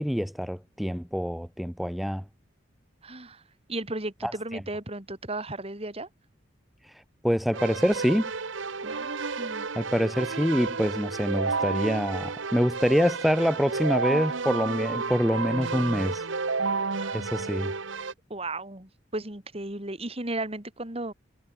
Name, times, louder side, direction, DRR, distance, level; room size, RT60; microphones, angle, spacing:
voice 1, 0.0-2.2 4.2-4.6 6.8-8.3 9.8-16.2 17.1-17.7, equal, ahead, 0.7 m, -26 dB
voice 2, 3.0-3.4 3.7-6.1 8.8-9.7 17.0-17.2 18.3-21.1, right 2 dB, 30° right, 3.1 m, -35 dB
Keyboard (musical), 7.5-18.1, right 4 dB, 85° right, 1.3 m, -31 dB
head